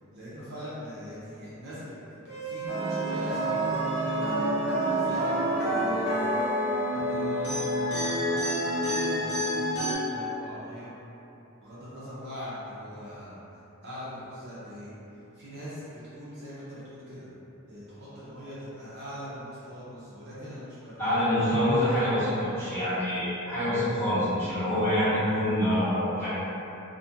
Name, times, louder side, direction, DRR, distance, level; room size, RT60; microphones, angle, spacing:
voice 1, 0.1-1.8 2.1-6.5 6.9-10.9 11.6-13.4 13.8-14.9 15.3-17.3 17.7-21.2, equal, 50° right, -10 dB, 0.6 m, -42 dB
sound 1, 2.3-8.4, left 1 dB, 75° left, 0.6 m, -34 dB
sound 2, 2.7-9.9, right 1 dB, 55° left, 0.9 m, -28 dB
voice 2, 21.0-26.3, equal, 10° left, -17 dB, 1.3 m, -26 dB
2.4 x 2.2 x 2.7 m, 2.9 s
head